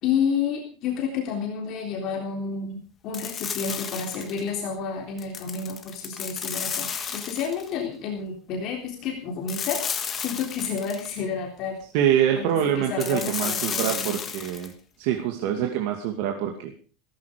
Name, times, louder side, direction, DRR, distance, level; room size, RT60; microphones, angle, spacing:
voice 1, 0.0-11.8 12.3-14.2 15.4-15.6, left 6 dB, 35° left, 1 dB, 3.6 m, -30 dB
sound 1, 3.1-4.5 5.2-7.7 9.5-11.2 13.0-14.7, left 7 dB, 20° left, 1.5 m, -32 dB
voice 2, 11.9-14.7 15.0-16.7, right 10 dB, 55° right, 3 dB, 2.4 m, -25 dB
17.0 x 14.5 x 5.2 m, 0.39 s
supercardioid pair, 175°, 0 cm